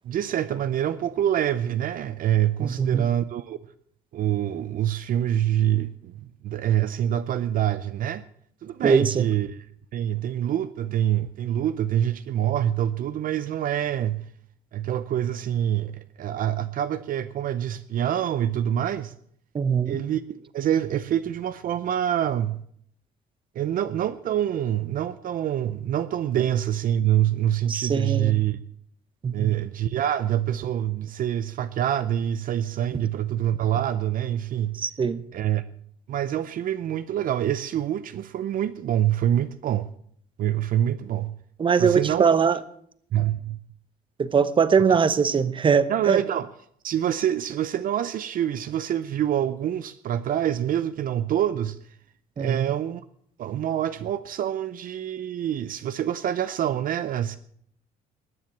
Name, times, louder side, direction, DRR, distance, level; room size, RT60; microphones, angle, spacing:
voice 1, 0.0-3.6 4.1-6.1 6.4-8.2 8.6-9.7 9.9-14.2 14.7-19.1 19.9-22.6 23.5-28.6 29.3-34.8 35.3-35.6 36.1-39.9 40.4-41.3 41.8-42.3 43.1-43.6 45.9-46.5 46.8-51.8 52.4-53.0 53.4-57.4, right 11 dB, 55° right, 0.7 m, -26 dB
voice 2, 2.6-3.0 8.8-9.3 19.5-20.0 27.7-28.4 29.2-29.6 34.8-35.2 41.6-42.6 44.2-46.2 52.4-52.7, right 6 dB, 30° right, 0.9 m, -22 dB
20.5 x 7.4 x 7.3 m
cardioid pair, 110°, 17 cm